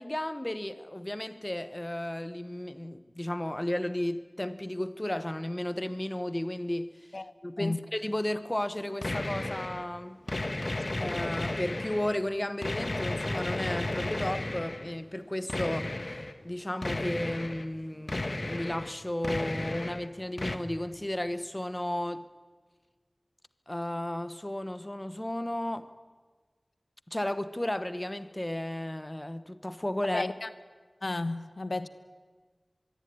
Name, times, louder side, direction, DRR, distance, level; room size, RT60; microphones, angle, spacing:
voice 1, 0.0-7.0 7.4-10.2 11.0-15.9 16.4-22.3 23.7-25.9 27.1-30.2, left 1 dB, 25° left, 1.1 m, -33 dB
voice 2, 7.1-7.8 30.1-30.5 31.0-31.9, left 2 dB, 75° left, 1.2 m, -33 dB
sound 1, 9.0-9.9 10.3-12.2 12.6-15.0 15.5-16.3 16.8-17.7 18.1-18.9 19.2-20.1 20.4-20.6, left 2 dB, 55° left, 1.6 m, -33 dB
24.5 x 22.0 x 9.6 m
wide cardioid pair, 45°, 0 cm